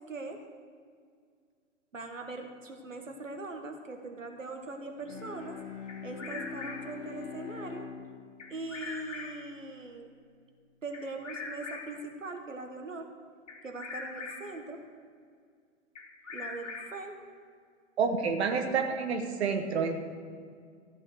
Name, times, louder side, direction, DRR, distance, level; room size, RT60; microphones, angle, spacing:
voice 1, 0.1-0.4 1.9-5.6 6.0-7.9 8.5-10.1 10.8-13.1 13.6-14.8 16.3-17.2, right 3 dB, 80° right, 4 dB, 1.5 m, -41 dB
Bowed string instrument, 5.0-9.9, left 5 dB, 30° left, 3.7 m, -44 dB
Bird vocalization bird call bird song, 5.9-7.0 8.4-9.5 10.9-12.1 13.5-14.6 15.9-17.1, left 4 dB, 65° left, 2.5 m, -42 dB
voice 2, 18.0-20.0, right 5 dB, 55° right, 4 dB, 1.5 m, -29 dB
14.5 x 5.6 x 8.1 m, 2.1 s
figure-of-eight pair, 110°, 38 cm